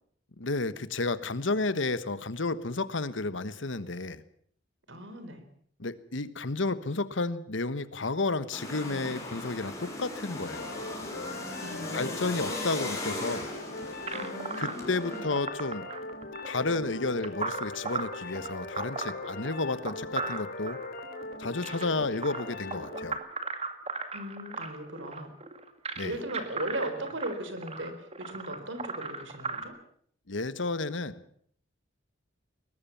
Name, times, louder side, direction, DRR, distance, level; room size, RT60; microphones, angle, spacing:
voice 1, 0.4-4.2 5.8-10.7 11.9-13.5 14.6-15.8 16.4-20.8 21.4-23.2 26.0-26.1 30.3-31.2, left 3 dB, 75° left, 15 dB, 1.3 m, -31 dB
voice 2, 4.9-5.4 11.6-12.1 12.9-13.1 14.1-15.3 24.1-25.3 26.0-29.7, right 1 dB, 70° right, 9 dB, 4.1 m, -38 dB
sound 1, 8.5-15.2, left 2 dB, 15° left, 6.2 m, -38 dB
sound 2, 10.5-23.1, left 2 dB, 55° left, 3.6 m, -40 dB
sound 3, 14.1-29.6, right 4 dB, 35° right, 2.2 m, -37 dB
22.0 x 19.0 x 7.2 m, 0.62 s
head